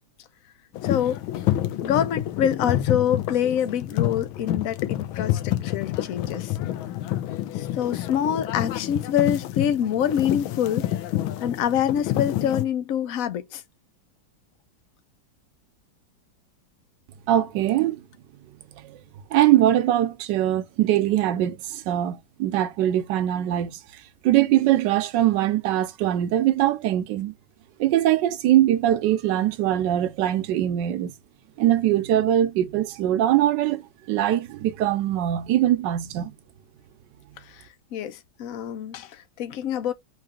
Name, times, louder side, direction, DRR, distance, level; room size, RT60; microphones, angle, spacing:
sound 1, 0.7-12.6, left 13 dB, 85° left, 1.5 m, -28 dB
voice 1, 0.8-1.2 1.8-6.5 7.6-10.9 11.4-13.6 37.5-37.6 37.9-39.9, left 9 dB, 70° left, 0.8 m, -26 dB
voice 2, 17.3-18.0 18.8-19.0 19.3-23.8 24.2-27.3 27.8-31.1 31.6-36.3, right 12 dB, 70° right, 1.2 m, -22 dB
4.7 x 3.2 x 3.5 m
omnidirectional pair, 2.2 m